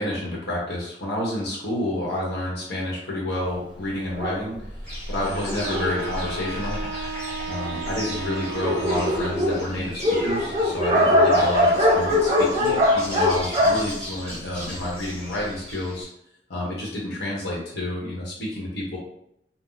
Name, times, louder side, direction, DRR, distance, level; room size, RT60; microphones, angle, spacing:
voice 1, 0.0-4.6 5.1-6.8 7.5-16.1 16.5-19.0, left 1 dB, 65° left, -4 dB, 1.0 m, -29 dB
Dog, 4.1-7.1 7.8-7.9 8.2-8.3 8.5-14.9, left 1 dB, 25° right, 0.7 m, -22 dB
Insect, 4.8-16.0, equal, 5° left, 1.2 m, -38 dB
Wind instrument woodwind instrument, 5.6-9.7, right 4 dB, 75° right, 0.4 m, -35 dB
2.7 x 2.0 x 3.8 m, 0.75 s
head